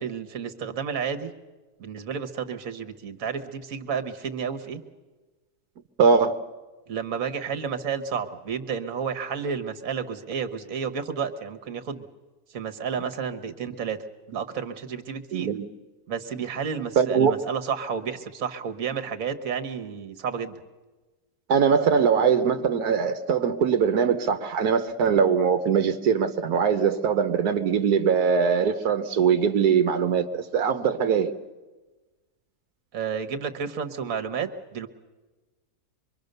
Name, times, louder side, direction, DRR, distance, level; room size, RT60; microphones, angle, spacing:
voice 1, 0.0-1.3 1.8-4.8 6.9-12.0 12.5-14.0 14.3-15.5 16.1-20.6 32.9-34.9, right 6 dB, 60° right, 8 dB, 1.7 m, -31 dB
voice 2, 6.0-6.4 15.3-15.7 17.0-17.3 21.5-31.4, right 6 dB, 85° right, 7 dB, 1.5 m, -22 dB
25.0 x 23.0 x 6.7 m, 1.2 s
omnidirectional pair, 1.6 m